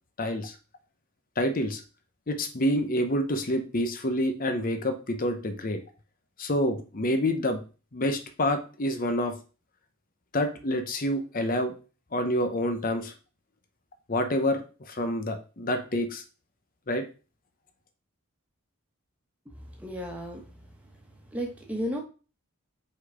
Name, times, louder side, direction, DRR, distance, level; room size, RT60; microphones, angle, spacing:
voice 1, 0.2-0.6 1.4-1.8 2.3-5.8 6.4-7.6 7.9-9.4 10.3-11.8 12.1-13.1 14.1-16.2 16.9-17.1, left 1 dB, 40° left, 7 dB, 0.8 m, -27 dB
voice 2, 19.4-20.4 21.3-22.0, equal, 5° right, 0 dB, 1.4 m, -34 dB
5.6 x 4.0 x 4.9 m, 0.34 s
head